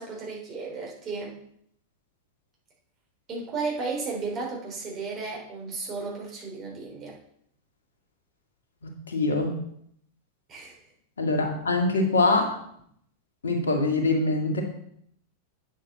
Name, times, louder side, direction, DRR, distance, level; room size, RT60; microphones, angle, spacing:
voice 1, 0.0-1.4 3.3-7.2 10.5-10.8, right 4 dB, 30° right, -2 dB, 3.6 m, -34 dB
voice 2, 9.1-9.6 11.2-12.6 13.4-14.6, left 2 dB, 70° left, 2 dB, 2.0 m, -23 dB
9.1 x 6.7 x 4.2 m, 0.69 s
figure-of-eight pair, 90°, 0 cm